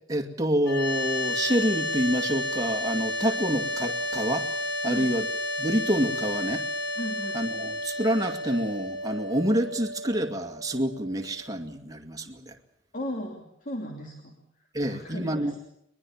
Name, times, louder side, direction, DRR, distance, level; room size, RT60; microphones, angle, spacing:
voice 1, 0.1-4.5 4.8-5.2 5.6-6.6 7.3-12.6 14.7-15.5, equal, 20° right, 5 dB, 2.2 m, -27 dB
sound 1, 0.6-11.7, left 1 dB, 70° left, 4.2 m, -32 dB
voice 2, 7.0-7.4 12.9-14.4 14.8-15.6, equal, 45° left, 2 dB, 3.0 m, -36 dB
22.0 x 21.5 x 7.3 m, 0.77 s
head